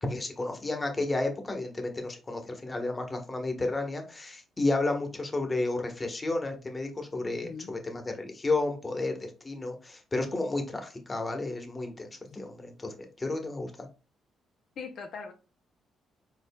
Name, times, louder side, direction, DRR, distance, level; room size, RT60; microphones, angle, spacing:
voice 1, 0.0-13.9, left 2 dB, 25° left, 1.2 m, -32 dB
voice 2, 7.2-7.7 14.8-15.3, left 5 dB, 65° left, 0.6 m, -41 dB
4.6 x 4.4 x 2.3 m
cardioid pair, 90°, 0 cm